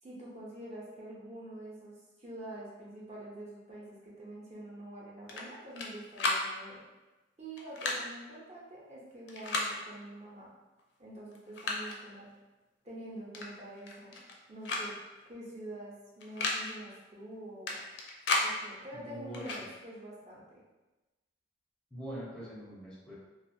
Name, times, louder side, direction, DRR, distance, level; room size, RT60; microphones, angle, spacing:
voice 1, 0.0-6.8 7.4-10.5 11.0-12.3 12.8-14.2 14.5-14.9 15.3-17.8 18.4-20.6, right 1 dB, 35° right, -6 dB, 0.7 m, -46 dB
sound 1, 5.3-5.9 6.2-6.4 7.6-8.0 9.3-9.7 10.8-10.9 11.3-12.0 13.3-13.5 13.8-14.3 14.6-14.9 15.1-15.2 16.2-16.6 17.7-18.5 19.3-19.6, left 3 dB, 65° left, 0.4 m, -33 dB
voice 2, 18.9-19.6 21.9-23.1, right 1 dB, 5° left, -7 dB, 0.5 m, -43 dB
2.4 x 2.3 x 2.6 m, 1.1 s
head